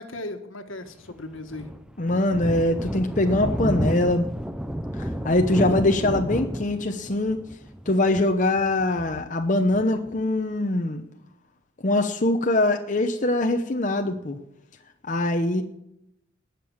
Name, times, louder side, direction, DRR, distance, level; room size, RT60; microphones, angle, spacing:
voice 1, 0.0-1.7 15.5-15.6, left 2 dB, 80° left, 7 dB, 1.7 m, -37 dB
Thunder, 1.1-10.2, equal, 5° right, 0.5 m, -31 dB
voice 2, 2.0-4.2 5.2-7.4 7.9-11.0 11.8-14.4 15.1-15.6, left 1 dB, 40° left, 5 dB, 0.8 m, -23 dB
19.5 x 6.9 x 7.2 m, 0.83 s
head